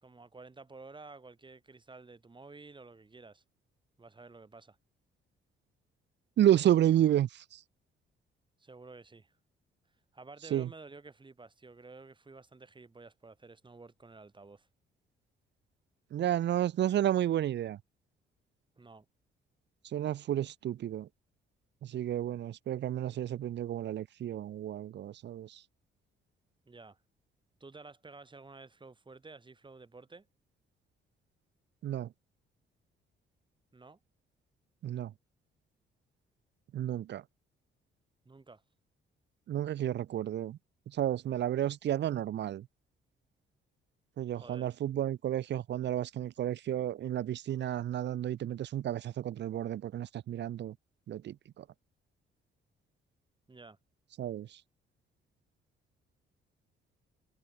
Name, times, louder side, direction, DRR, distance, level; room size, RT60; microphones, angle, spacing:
voice 1, 0.0-3.4 4.0-4.8 8.6-9.3 10.1-14.7 18.8-19.0 26.7-27.0 27.6-30.3 33.7-34.0 38.2-38.6 44.3-44.7 53.5-53.8, right 3 dB, 25° right, 4.4 m, -52 dB
voice 2, 6.4-7.6 10.5-10.7 16.1-17.8 19.9-21.1 21.8-25.6 31.8-32.1 34.8-35.1 36.7-37.2 39.5-40.6 40.9-42.7 44.2-50.7 51.1-51.6 54.2-54.6, right 11 dB, 65° right, 0.8 m, -31 dB
cardioid pair, 90°, 20 cm